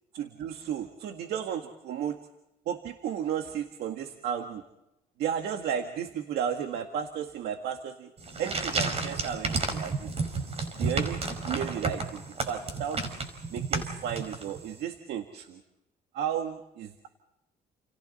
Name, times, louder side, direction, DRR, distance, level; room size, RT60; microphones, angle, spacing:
voice 1, 0.1-2.2 2.7-4.6 5.2-8.1 8.4-10.1 10.8-11.2 11.5-13.0 13.5-15.6 16.1-17.1, right 8 dB, 75° right, 5 dB, 2.0 m, -33 dB
sound 1, 8.2-14.7, right 3 dB, 35° right, 5.2 m, -32 dB
30.0 x 30.0 x 4.3 m, 0.90 s
cardioid pair, 110°, 17 cm